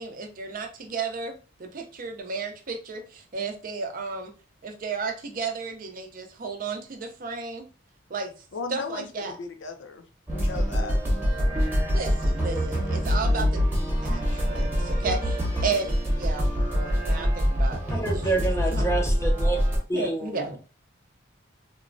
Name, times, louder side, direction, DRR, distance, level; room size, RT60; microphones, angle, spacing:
voice 1, 0.0-1.3 1.6-4.3 4.6-7.6 8.1-8.3 8.7-9.4 11.9-18.9 19.9-20.6, right 4 dB, 45° right, 5 dB, 0.4 m, -33 dB
voice 2, 8.5-11.0, left 4 dB, 70° left, 6 dB, 0.5 m, -36 dB
sound 1, 10.3-19.8, equal, 10° right, 0.9 m, -25 dB
voice 3, 17.9-19.6 19.9-20.6, right 2 dB, 15° left, 2 dB, 0.5 m, -28 dB
3.0 x 2.1 x 2.5 m, 0.35 s
head